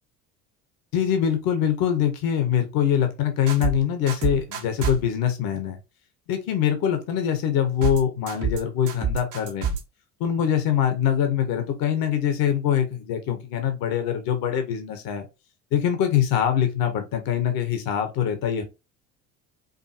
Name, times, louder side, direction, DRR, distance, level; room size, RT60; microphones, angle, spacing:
voice 1, 0.9-5.8 6.3-9.8 10.2-15.2 15.7-18.6, left 9 dB, 60° left, 1.1 m, -23 dB
sound 1, 3.5-3.8 4.1-5.0 7.8-8.0 8.3-8.6 8.9-9.8, right 5 dB, 75° right, 1.3 m, -26 dB
5.3 x 2.7 x 2.6 m
hypercardioid pair, 65°, 39 cm